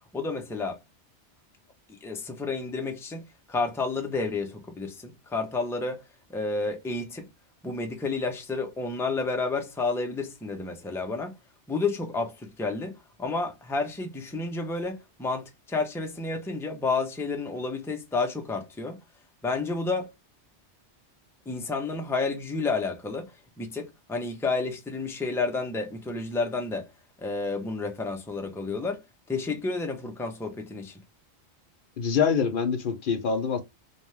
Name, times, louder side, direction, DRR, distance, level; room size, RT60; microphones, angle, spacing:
voice 1, 0.1-0.8 1.9-6.0 6.3-7.3 7.6-11.3 11.7-19.0 19.4-20.1 21.5-23.3 23.6-26.9 27.2-29.0 29.3-31.0, left 3 dB, 5° left, 0.3 m, -30 dB
voice 2, 32.0-33.6, left 6 dB, 60° left, 0.7 m, -25 dB
2.7 x 2.3 x 3.1 m
omnidirectional pair, 1.1 m